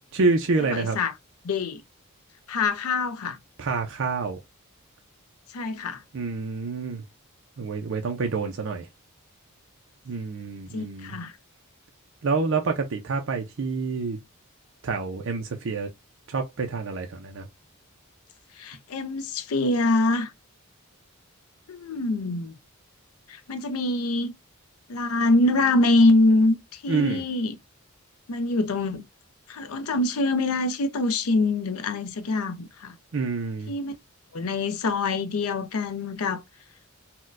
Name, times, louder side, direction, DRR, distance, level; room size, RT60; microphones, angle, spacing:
voice 1, 0.1-1.0 3.6-4.4 6.1-7.0 7.6-8.9 10.1-11.2 12.2-14.2 14.8-15.9 16.3-17.5 26.9-27.2 33.1-33.7, right 4 dB, 60° right, 0.5 m, -27 dB
voice 2, 0.7-1.1 1.4-1.8 2.5-3.4 5.5-6.0 10.7-11.3 18.5-20.3 21.7-22.6 23.3-24.3 24.9-27.6 28.3-29.0 29.5-33.0 33.7-34.0 34.3-36.4, left 2 dB, 80° left, 0.5 m, -24 dB
4.2 x 2.2 x 2.4 m
head